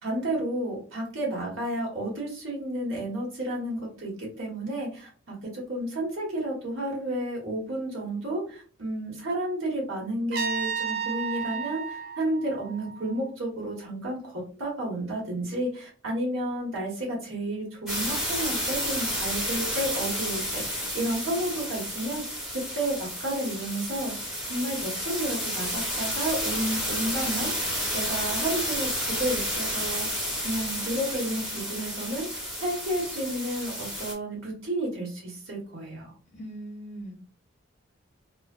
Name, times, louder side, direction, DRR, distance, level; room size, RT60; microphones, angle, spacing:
voice 1, 0.0-22.4 22.7-24.1 24.5-30.1 30.4-36.1, right 1 dB, 75° right, -3 dB, 1.2 m, -31 dB
Trumpet, 10.3-13.2, right 6 dB, 50° right, 0.3 m, -33 dB
sound 1, 17.9-34.1, equal, 5° right, 0.9 m, -31 dB
voice 2, 36.3-37.3, right 1 dB, 35° left, -3 dB, 0.9 m, -40 dB
3.1 x 2.0 x 2.3 m, 0.40 s
head